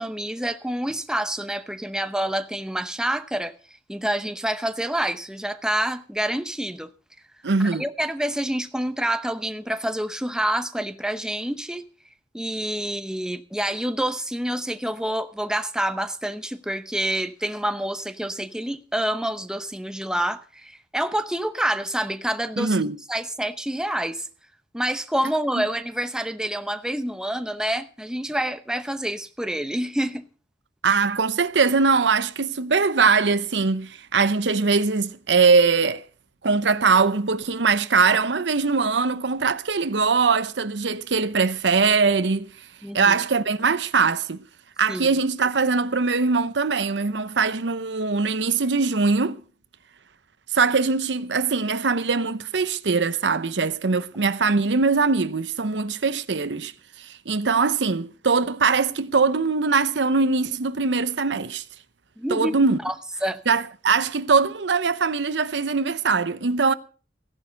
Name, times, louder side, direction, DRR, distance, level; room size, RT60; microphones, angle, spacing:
voice 1, 0.0-3.5 3.9-6.9 7.7-11.8 12.3-22.8 23.1-24.3 24.7-30.2 42.8-43.2 44.9-45.2 62.2-62.5 62.8-62.9 63.2-63.4, right 1 dB, 5° right, 0.8 m, -27 dB
voice 2, 7.4-7.8 22.6-23.0 25.6-25.7 30.8-36.0 36.4-42.5 42.9-44.4 44.8-49.4 50.5-56.7 57.0-61.6 62.3-62.8 63.5-66.7, right 4 dB, 90° right, 0.8 m, -21 dB
15.5 x 10.5 x 5.3 m
head